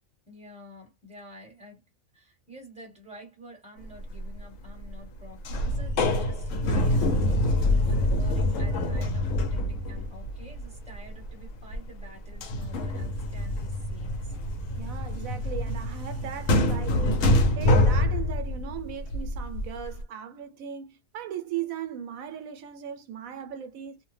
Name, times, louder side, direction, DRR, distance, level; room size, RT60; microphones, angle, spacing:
voice 1, 0.3-1.8 2.1-14.4, equal, 5° right, 1.1 m, -49 dB
sound 1, 4.0-4.4 4.7-5.2 5.4-12.0 12.3-20.0, left 1 dB, 70° left, 1.0 m, -26 dB
voice 2, 14.7-24.0, right 9 dB, 85° right, 1.1 m, -38 dB
2.6 x 2.1 x 3.2 m
omnidirectional pair, 1.4 m